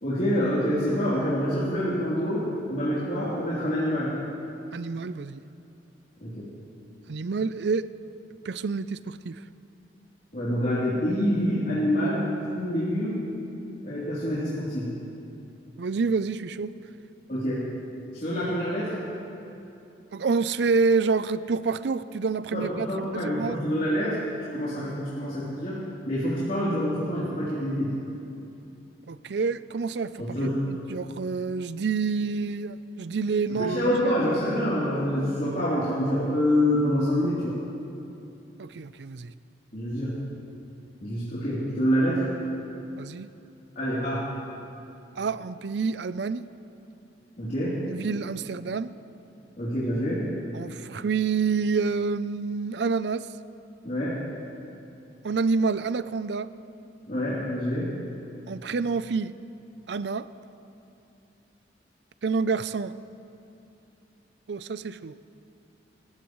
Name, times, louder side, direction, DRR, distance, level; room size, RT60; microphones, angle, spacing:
voice 1, 0.0-2.4 2.7-4.1 6.2-6.5 10.3-12.3 12.5-13.2 13.8-14.9 17.3-17.7 18.1-18.9 22.5-24.2 24.5-25.8 26.1-27.9 30.2-30.5 33.5-37.5 39.7-40.2 41.0-42.3 43.7-44.3 47.4-47.8 49.6-50.2 53.8-54.2 57.1-57.9, equal, 50° left, -11 dB, 3.3 m, -26 dB
voice 2, 4.7-5.4 7.1-7.9 8.5-9.3 15.8-16.7 20.1-22.9 23.1-23.6 29.1-33.8 38.6-39.3 43.0-43.3 45.2-46.4 47.9-48.9 50.5-53.3 55.2-56.5 58.5-59.3 59.9-60.3 62.2-62.9 64.5-65.1, right 4 dB, 70° right, 15 dB, 0.5 m, -28 dB
27.0 x 15.0 x 3.1 m, 2.8 s
head